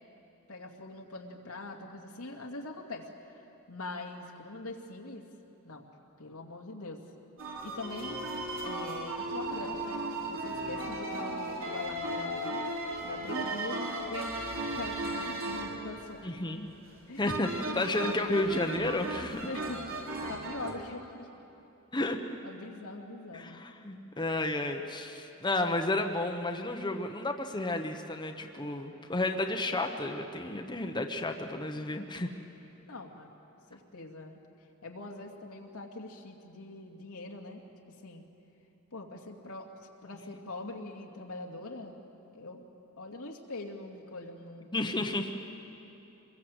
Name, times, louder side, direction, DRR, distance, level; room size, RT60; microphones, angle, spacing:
voice 1, 0.5-5.2 5.6-5.9 6.2-7.0 7.6-8.2 8.6-12.6 13.0-16.4 17.1-18.6 19.4-21.3 22.4-23.7 32.9-33.3 33.7-34.4 34.8-37.6 37.9-38.3 38.9-39.7 40.0-42.0 42.3-42.6 43.0-44.7, left 2 dB, 90° left, 1 dB, 2.5 m, -43 dB
sound 1, 7.4-20.7, right 1 dB, 65° right, 3.5 m, -36 dB
voice 2, 16.2-16.7 17.2-19.5 21.9-22.2 23.3-32.3 44.7-45.3, left 2 dB, 20° left, 4 dB, 1.2 m, -32 dB
25.5 x 21.5 x 8.0 m, 2.9 s
head